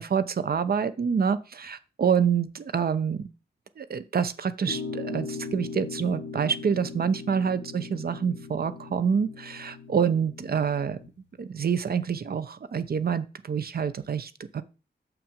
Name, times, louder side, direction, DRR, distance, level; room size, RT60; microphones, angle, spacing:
voice 1, 0.0-3.3 3.8-11.0 11.4-14.6, right 7 dB, 55° right, 13 dB, 0.7 m, -27 dB
sound 1, 4.7-11.1, left 4 dB, 75° left, 1.3 m, -39 dB
6.8 x 5.9 x 5.2 m, 0.32 s
wide cardioid pair, 145°, 19 cm